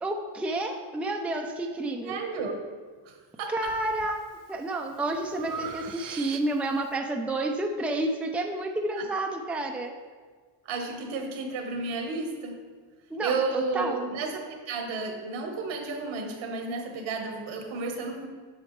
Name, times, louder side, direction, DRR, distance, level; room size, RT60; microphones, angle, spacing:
voice 1, 0.0-2.2 3.5-4.2 4.5-9.9 13.1-14.1, right 2 dB, 5° right, 2 dB, 0.5 m, -30 dB
voice 2, 2.0-2.6 3.0-3.7 9.0-9.1 10.6-12.6 13.2-18.3, right 3 dB, 75° right, 3 dB, 1.5 m, -32 dB
Breathing, 3.6-4.1 4.6-6.8, right 6 dB, 45° right, 0.6 m, -40 dB
8.8 x 6.2 x 3.2 m, 1.5 s
cardioid pair, 90°, 48 cm